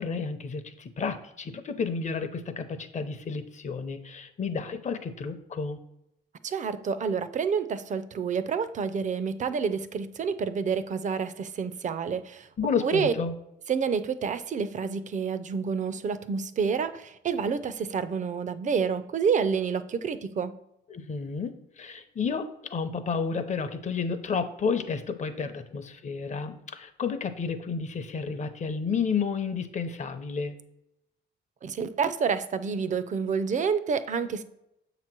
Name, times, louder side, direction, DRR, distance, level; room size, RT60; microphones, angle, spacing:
voice 1, 0.0-5.8 12.6-13.3 20.9-30.6, left 5 dB, 40° left, 9 dB, 0.7 m, -31 dB
voice 2, 6.4-12.5 12.8-13.1 13.7-20.6 31.6-34.4, right 6 dB, 40° right, 13 dB, 0.5 m, -28 dB
7.3 x 3.0 x 6.0 m, 0.82 s
cardioid pair, 115°, 20 cm